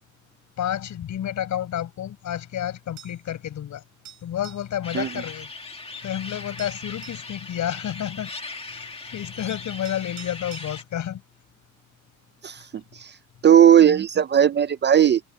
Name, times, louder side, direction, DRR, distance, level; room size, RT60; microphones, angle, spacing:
voice 1, 0.6-3.8 4.2-5.5 6.0-8.3 8.7-11.2, left 10 dB, 65° left, 5.2 m, -30 dB
sound 1, 3.0-3.3 4.1-4.7 6.1-6.2 6.6-7.3 8.8-8.9 9.5-10.7, right 10 dB, 60° right, 7.1 m, -46 dB
sound 2, 4.8-10.8, left 3 dB, 20° left, 1.8 m, -39 dB
voice 2, 13.4-15.2, right 9 dB, 35° right, 0.4 m, -16 dB
cardioid pair, 155°, 31 cm